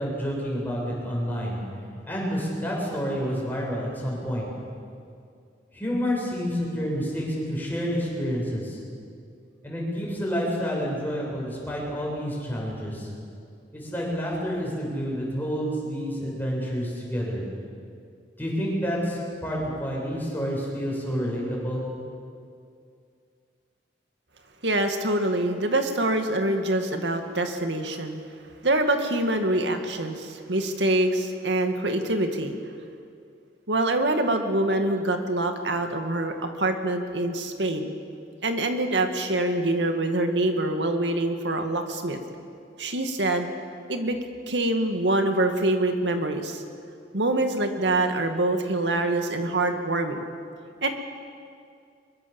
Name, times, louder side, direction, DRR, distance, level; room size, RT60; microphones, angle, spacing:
voice 1, 0.0-1.6 2.0-4.5 5.7-8.8 9.6-13.1 13.7-17.4 18.4-21.8, equal, 10° left, -3 dB, 7.1 m, -29 dB
voice 2, 24.6-28.2 28.6-32.6 33.7-37.9 38.4-42.2 42.8-43.5 43.9-44.2 44.5-46.6 47.1-50.2 50.8-50.9, right 2 dB, 85° right, 5 dB, 2.2 m, -25 dB
23.5 x 23.0 x 7.2 m, 2.4 s
head